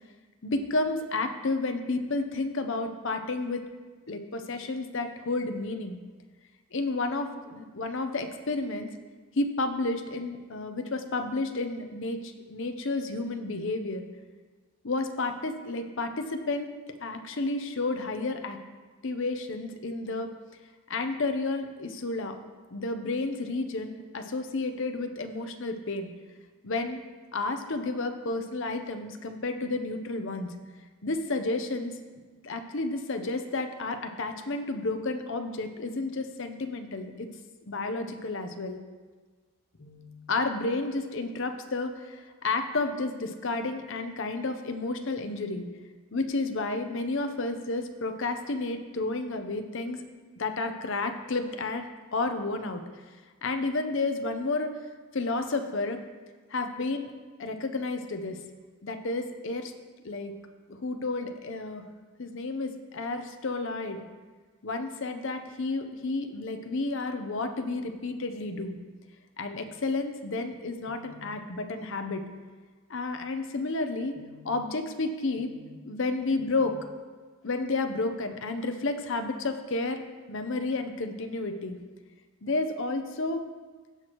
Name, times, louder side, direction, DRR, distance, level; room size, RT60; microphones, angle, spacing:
voice 1, 0.4-3.6 4.1-6.0 6.7-8.9 9.4-14.0 14.8-16.7 17.0-18.6 19.0-20.3 20.9-22.4 22.7-26.1 26.6-27.0 27.3-30.5 31.0-32.0 32.4-37.3 37.7-38.8 39.8-45.6 46.1-50.0 50.4-51.8 52.1-52.8 53.4-54.8 55.1-56.0 56.5-57.1 57.4-58.4 58.8-59.7 60.0-60.3 60.7-61.8 62.2-64.0 64.6-68.8 69.4-72.2 72.9-76.8 77.4-81.8 82.4-83.5, left 3 dB, 55° left, 7 dB, 0.7 m, -31 dB
16.5 x 6.1 x 3.0 m, 1.4 s
head